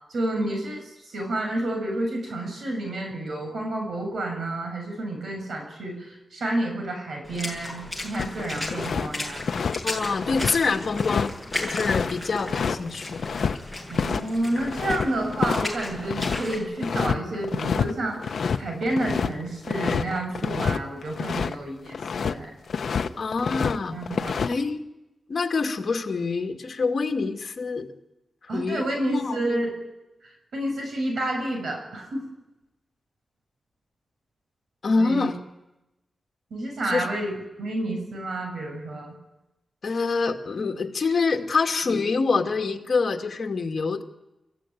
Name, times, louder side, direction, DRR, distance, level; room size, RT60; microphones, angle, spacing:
voice 1, 0.1-9.5 13.9-18.2 18.5-22.5 23.9-24.4 28.5-29.7 30.2-32.3 35.0-35.3 36.5-37.3 37.6-39.2, right 1 dB, 85° right, 2 dB, 7.5 m, -30 dB
Water / Splash splatter, 7.2-16.6, left 2 dB, 5° right, 7.7 m, -35 dB
sound 1, 8.2-9.1 9.4-13.6 13.9-14.2 14.5-16.4 16.8-17.2 17.4-17.9 18.2-21.6 21.9-22.3 22.7-23.8 24.0-24.5, left 6 dB, 70° left, 0.9 m, -27 dB
voice 2, 9.8-11.3 11.6-13.2 23.2-24.0 24.4-24.8 25.3-27.9 28.5-29.6 34.8-35.4 36.9-37.1 39.8-44.0, left 4 dB, 50° left, 3 dB, 2.3 m, -26 dB
29.0 x 15.0 x 9.5 m, 0.98 s
wide cardioid pair, 160°, 0 cm